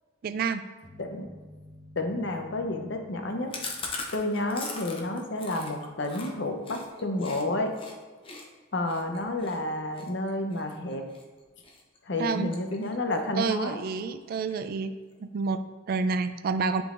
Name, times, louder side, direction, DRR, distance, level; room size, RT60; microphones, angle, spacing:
voice 1, 0.2-0.6 12.2-12.5 13.4-14.9 15.2-16.8, right 4 dB, 50° right, 11 dB, 0.3 m, -29 dB
sound 1, 0.8-5.0, equal, 20° right, 0.9 m, -52 dB
voice 2, 2.0-3.5 4.1-7.7 8.7-11.0 12.1-13.8, left 2 dB, 65° left, 4 dB, 0.7 m, -30 dB
Chewing mastication, 3.5-7.4 7.7-7.9 8.2-11.2 11.6-12.0 12.2-13.1 13.4-13.5 13.8-13.9 14.2-14.8, left 3 dB, 30° left, 0.7 m, -40 dB
10.0 x 3.8 x 2.5 m, 1.4 s
head